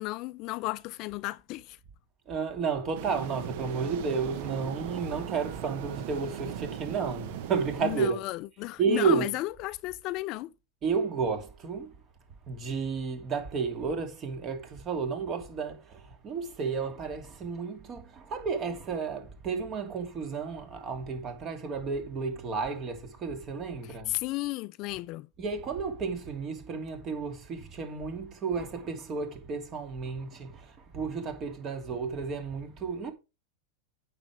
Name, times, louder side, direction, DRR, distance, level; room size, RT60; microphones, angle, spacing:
voice 1, 0.0-1.8 7.8-10.5 23.8-25.3, left 19 dB, 45° left, 0.4 m, -34 dB
voice 2, 2.3-8.2 8.8-9.3 10.8-11.9 12.5-24.2 25.4-33.1, right 5 dB, 35° right, 2.8 m, -32 dB
sound 1, 2.9-8.1, right 10 dB, 60° right, 1.2 m, -38 dB
9.0 x 6.9 x 4.7 m
hypercardioid pair, 125°, 0 cm